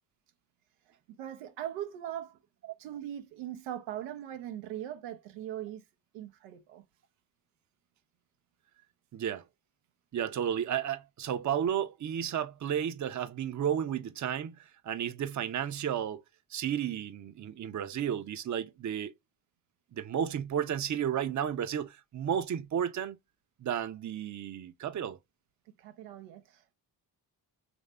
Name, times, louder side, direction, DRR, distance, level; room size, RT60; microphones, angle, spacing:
voice 1, 1.2-2.4 2.8-5.8 6.1-6.8 25.8-26.7, right 11 dB, 90° right, 0.6 m, -40 dB
voice 2, 9.1-9.4 10.1-16.2 16.5-19.1 19.9-23.2 23.6-25.2, right 9 dB, 40° right, 0.6 m, -33 dB
3.2 x 2.5 x 4.3 m
hypercardioid pair, 45°, 45 cm